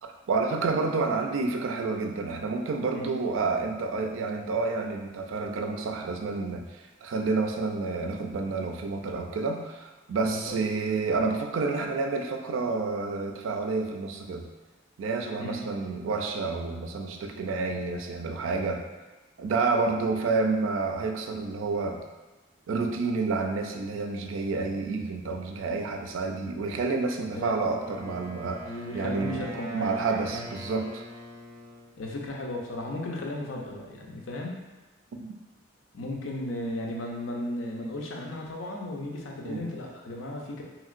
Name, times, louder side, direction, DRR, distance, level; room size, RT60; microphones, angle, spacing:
voice 1, 0.0-14.5 15.0-18.8 19.4-22.0 22.7-28.6 28.9-29.5 29.7-31.0 35.2-35.3 39.4-39.7, right 3 dB, 90° right, 4 dB, 0.3 m, -29 dB
voice 2, 10.2-10.6 15.4-15.6 27.3-27.5 28.6-29.9 30.3-30.5 32.0-34.6 35.9-40.6, left 1 dB, 80° left, 0 dB, 0.5 m, -35 dB
Wind instrument woodwind instrument, 27.8-31.9, equal, 20° right, 0.5 m, -42 dB
2.9 x 2.8 x 2.4 m, 1.1 s
head